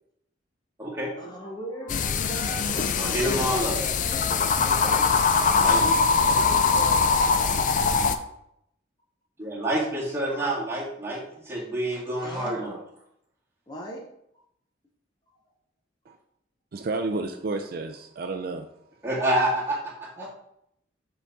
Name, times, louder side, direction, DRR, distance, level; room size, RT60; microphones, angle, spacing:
voice 1, 1.1-2.9 3.1-4.2 4.6-5.1 5.4-5.7 6.3-7.2 10.3-10.5 11.6-11.7 11.9-12.8 13.7-14.0 20.2-20.3, equal, 20° left, -2 dB, 0.8 m, -38 dB
sound 1, 1.9-8.2, left 5 dB, 40° left, 0.4 m, -22 dB
voice 2, 3.0-3.8 5.6-5.8 9.4-12.7 19.0-20.1, right 1 dB, 15° right, -6 dB, 1.8 m, -27 dB
voice 3, 16.7-18.7, right 3 dB, 50° right, 6 dB, 0.4 m, -31 dB
7.0 x 4.0 x 3.6 m, 0.76 s
head